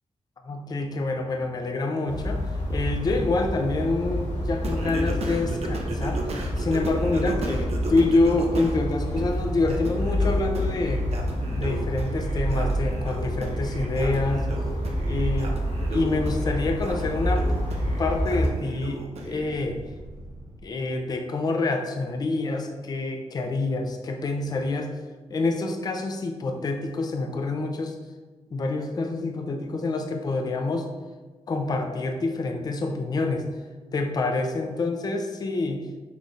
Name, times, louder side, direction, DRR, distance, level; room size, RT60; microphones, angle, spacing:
voice 1, 0.4-2.4 2.7-6.2 6.6-11.0 11.5-14.5 15.0-15.5 15.9-17.7 18.0-19.8 20.6-24.9 25.3-27.9 28.5-30.9 31.5-33.4 33.9-35.9, left 3 dB, 35° left, 4 dB, 0.5 m, -27 dB
sound 1, 2.1-18.5, equal, 65° left, 1.9 m, -28 dB
sound 2, 3.2-20.6, right 1 dB, 30° right, 0.8 m, -44 dB
Singing, 4.6-8.8 9.2-19.6, right 2 dB, 60° right, 0.9 m, -36 dB
6.6 x 3.1 x 4.8 m, 1.3 s
wide cardioid pair, 180°, 12 cm